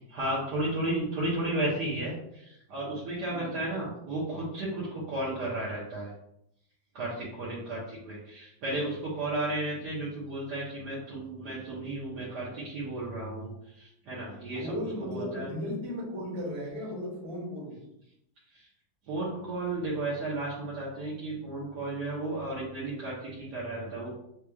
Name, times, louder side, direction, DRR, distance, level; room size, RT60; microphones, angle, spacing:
voice 1, 0.1-6.1 6.9-14.7 15.0-15.5 18.5-18.7 19.1-24.1, right 2 dB, 90° right, -7 dB, 1.7 m, -33 dB
voice 2, 14.6-17.8, equal, 70° right, -5 dB, 2.1 m, -36 dB
6.4 x 3.1 x 2.3 m, 0.78 s
omnidirectional pair, 1.7 m